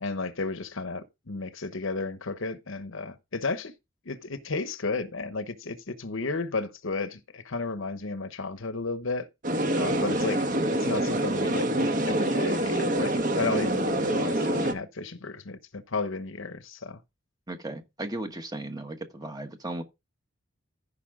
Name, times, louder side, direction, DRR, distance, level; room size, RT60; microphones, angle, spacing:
voice 1, 0.0-3.7 4.1-9.3 9.8-10.5 10.8-17.0, left 3 dB, 65° left, 1.0 m, -33 dB
sound 1, 9.4-14.7, right 1 dB, 40° right, 1.3 m, -26 dB
voice 2, 17.5-19.8, right 1 dB, 20° right, 1.2 m, -36 dB
14.5 x 5.6 x 3.7 m
head